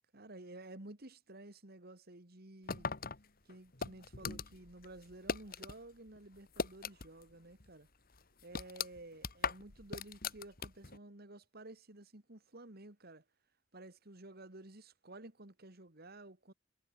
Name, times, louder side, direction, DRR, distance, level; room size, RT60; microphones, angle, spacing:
voice 1, 0.1-2.9 3.4-7.9 8.4-13.2 13.7-16.5, right 2 dB, 50° right, 2.4 m, -53 dB
sound 1, 2.7-5.8 6.1-7.3 7.6-7.7 8.1-11.0, left 5 dB, 50° left, 1.9 m, -40 dB
head